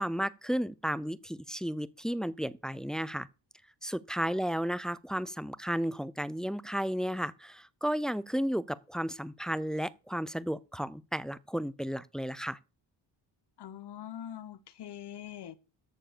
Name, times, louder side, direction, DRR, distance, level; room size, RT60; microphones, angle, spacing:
voice 1, 0.0-3.3 3.8-12.6, equal, ahead, 0.5 m, -33 dB
voice 2, 13.6-15.6, left 10 dB, 55° left, 1.1 m, -43 dB
13.5 x 4.7 x 6.8 m
cardioid pair, 90°, 49 cm